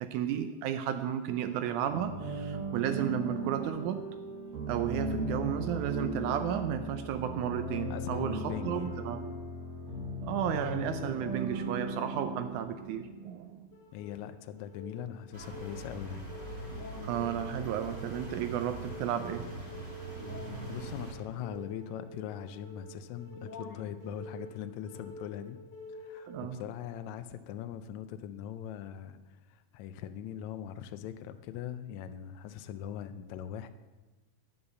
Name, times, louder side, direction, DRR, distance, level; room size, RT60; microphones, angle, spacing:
voice 1, 0.0-4.0 4.7-9.2 10.2-13.6 17.0-19.5 26.3-26.6, right 10 dB, 80° right, 9 dB, 2.0 m, -33 dB
sound 1, 1.9-13.6, right 1 dB, 55° right, 2.3 m, -37 dB
voice 2, 7.9-9.0 13.9-16.2 20.4-25.6 25.9-33.7, left 10 dB, 80° left, 9 dB, 1.8 m, -41 dB
sound 2, 13.7-26.7, left 1 dB, 50° left, 1.4 m, -48 dB
sound 3, 15.3-21.1, right 2 dB, 25° right, 2.7 m, -42 dB
9.9 x 5.5 x 7.8 m, 1.2 s
omnidirectional pair, 3.6 m